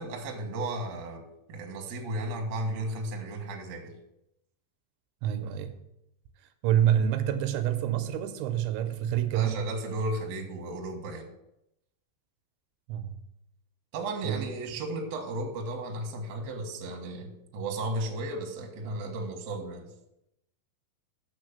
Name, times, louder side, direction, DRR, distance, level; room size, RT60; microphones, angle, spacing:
voice 1, 0.0-3.9 9.3-11.3 13.9-19.9, right 1 dB, 70° right, 2 dB, 1.7 m, -34 dB
voice 2, 5.2-5.8 6.6-9.6 12.9-13.2 14.2-14.5, right 10 dB, 85° right, 9 dB, 2.8 m, -27 dB
6.8 x 6.3 x 6.7 m, 0.84 s
omnidirectional pair, 5.3 m